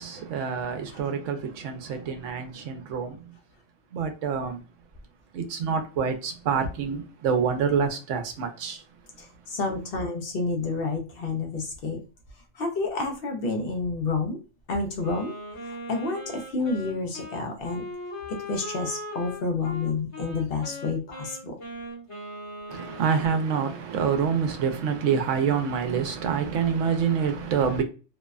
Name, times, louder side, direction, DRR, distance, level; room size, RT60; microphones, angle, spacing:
voice 1, 0.0-3.3 3.9-4.6 5.3-8.8 22.7-27.8, right 6 dB, 80° right, 0.9 m, -27 dB
voice 2, 9.2-12.0 12.5-14.4 14.7-15.3 15.6-17.9 18.5-21.6, left 3 dB, 60° left, 0.7 m, -29 dB
Wind instrument woodwind instrument, 15.0-23.4, left 1 dB, 30° left, 0.9 m, -39 dB
2.6 x 2.1 x 2.3 m
omnidirectional pair, 1.3 m